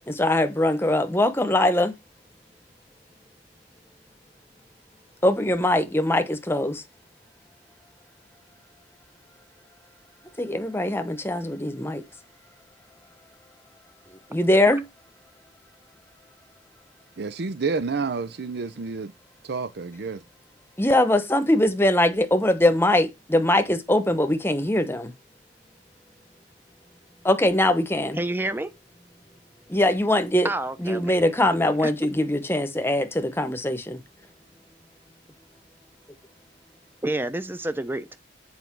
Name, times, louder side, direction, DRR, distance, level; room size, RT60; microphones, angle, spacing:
voice 1, 0.1-2.0 5.2-6.8 10.4-12.0 14.3-14.9 20.8-25.1 27.2-28.2 29.7-30.5 30.8-34.0, left 1 dB, 15° left, 1.1 m, -22 dB
voice 2, 17.2-19.1 19.4-20.2, right 4 dB, 60° right, 0.5 m, -29 dB
voice 3, 28.1-28.7 30.4-31.5 31.8-31.9 37.0-38.2, right 1 dB, 10° right, 0.7 m, -29 dB
8.1 x 5.2 x 4.6 m
head